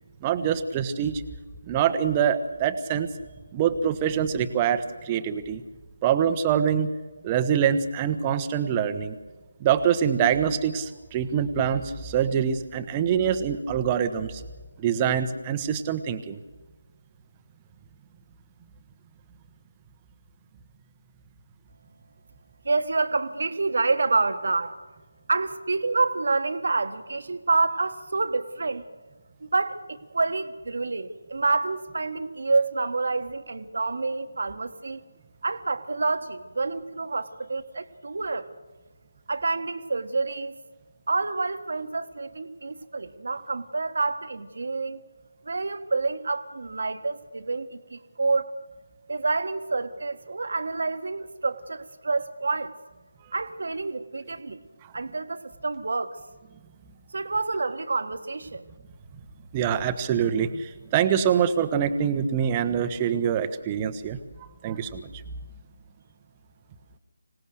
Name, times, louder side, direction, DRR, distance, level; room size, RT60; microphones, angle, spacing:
voice 1, 0.2-1.2 1.7-3.1 3.5-5.6 6.0-6.9 7.2-9.2 9.6-14.4 14.8-16.4 59.5-64.2 64.6-65.1, right 8 dB, 20° right, 11 dB, 1.1 m, -25 dB
voice 2, 22.6-24.8 25.3-28.8 29.4-35.0 35.4-38.5 39.3-40.5 41.1-45.0 45.4-48.5 49.1-52.7 53.3-54.6 54.9-56.2 57.1-58.7, right 3 dB, 55° right, 10 dB, 1.5 m, -28 dB
25.5 x 18.0 x 6.6 m, 1.3 s
figure-of-eight pair, 155°, 0 cm